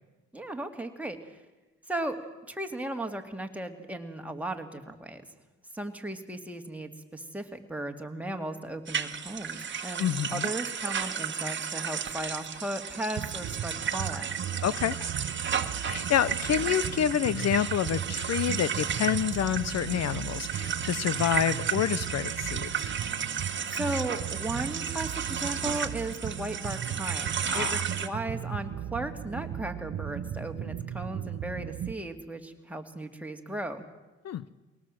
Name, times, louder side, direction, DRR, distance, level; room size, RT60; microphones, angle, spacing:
voice 1, 0.3-1.3 1.9-2.2 2.5-5.2 5.7-14.4 23.7-33.8, right 1 dB, 5° right, 4 dB, 2.3 m, -36 dB
sound 1, 8.9-28.1, right 7 dB, 40° right, 1.5 m, -33 dB
voice 2, 10.0-10.5 14.6-15.0 15.8-22.9 27.5-27.8 34.2-34.4, left 10 dB, 60° left, 17 dB, 0.7 m, -28 dB
sound 2, 13.2-31.9, right 10 dB, 55° right, 0.9 m, -37 dB
22.5 x 18.5 x 7.7 m, 1.2 s
cardioid pair, 90°, 30 cm